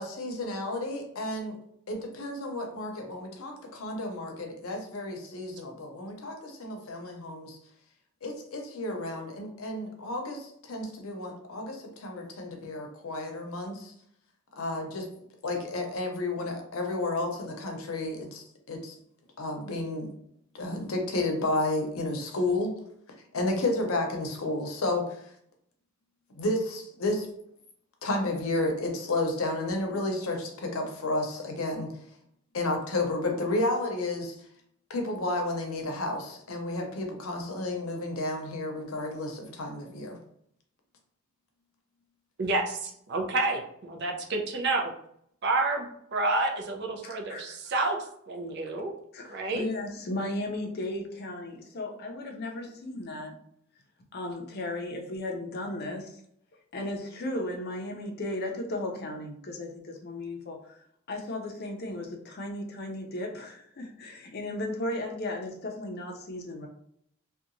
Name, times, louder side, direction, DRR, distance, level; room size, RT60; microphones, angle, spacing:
voice 1, 0.0-1.6 1.9-7.6 8.2-13.9 14.6-15.1 15.4-18.9 19.4-20.1 20.5-22.7 23.3-25.0 26.4-27.3 28.0-31.9 32.5-34.3 34.9-40.2, left 2 dB, 90° left, 2 dB, 0.6 m, -31 dB
voice 2, 42.4-44.9 45.4-48.0 48.3-48.9 49.3-49.6, right 2 dB, 55° right, 2 dB, 0.5 m, -29 dB
voice 3, 47.0-47.6 49.1-53.4 54.1-56.1 56.7-60.8 61.1-66.7, left 1 dB, 50° left, 3 dB, 0.5 m, -35 dB
2.8 x 2.2 x 2.5 m, 0.69 s
head